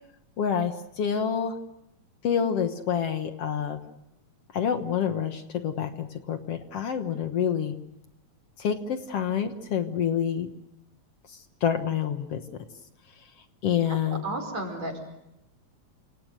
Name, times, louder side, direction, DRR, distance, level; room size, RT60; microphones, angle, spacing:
voice 1, 0.4-1.6 2.2-3.8 4.5-7.8 8.6-10.5 11.6-12.7 13.6-14.2, left 8 dB, 60° left, 8 dB, 2.2 m, -27 dB
voice 2, 14.2-15.0, right 2 dB, 65° right, 4 dB, 6.1 m, -32 dB
28.0 x 27.0 x 6.7 m, 0.86 s
omnidirectional pair, 3.3 m